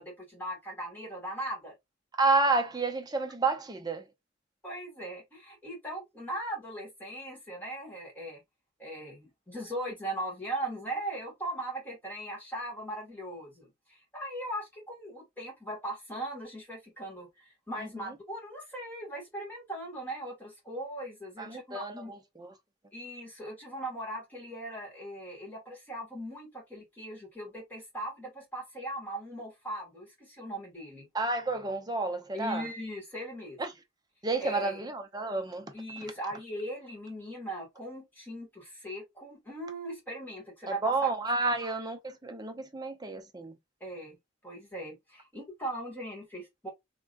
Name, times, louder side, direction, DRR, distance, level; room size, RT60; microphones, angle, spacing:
voice 1, 0.0-1.7 4.6-8.4 8.8-22.1 22.9-31.1 32.3-33.6 34.4-34.8 35.7-41.1 43.8-44.2 44.4-46.7, right 1 dB, 10° left, 2.3 m, -39 dB
voice 2, 2.1-4.1 17.8-18.1 21.4-22.5 31.1-32.7 33.6-33.7 34.2-35.7 40.7-43.6, right 3 dB, 20° right, 0.6 m, -30 dB
3.7 x 3.6 x 2.4 m
head